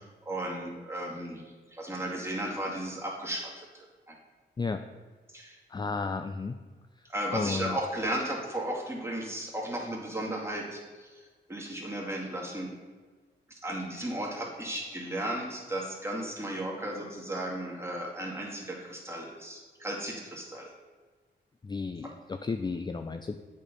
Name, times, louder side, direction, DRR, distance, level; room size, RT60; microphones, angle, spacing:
voice 1, 0.2-4.2 5.3-5.6 7.1-11.2 11.5-12.7 13.5-20.7 22.0-22.1, right 1 dB, 15° right, -3 dB, 2.1 m, -35 dB
voice 2, 5.7-6.6 7.3-7.8 21.6-23.4, left 4 dB, 20° left, 8 dB, 0.4 m, -33 dB
8.2 x 4.6 x 5.2 m, 1.4 s
cardioid pair, 75°, 20 cm